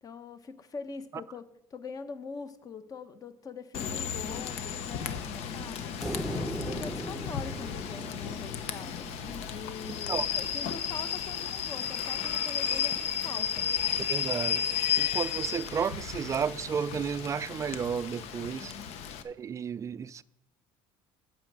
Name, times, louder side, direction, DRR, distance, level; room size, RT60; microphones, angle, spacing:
voice 1, 0.0-6.0 6.3-13.7 18.5-19.0, left 5 dB, 35° left, 1.0 m, -43 dB
Rain / Train, 3.7-19.2, left 8 dB, 70° left, 0.9 m, -33 dB
sound 1, 6.0-9.4, equal, ahead, 0.8 m, -38 dB
voice 2, 14.1-14.6 15.0-18.7 19.2-20.2, right 7 dB, 30° right, 0.4 m, -32 dB
8.9 x 6.1 x 8.0 m
cardioid pair, 115°, 11 cm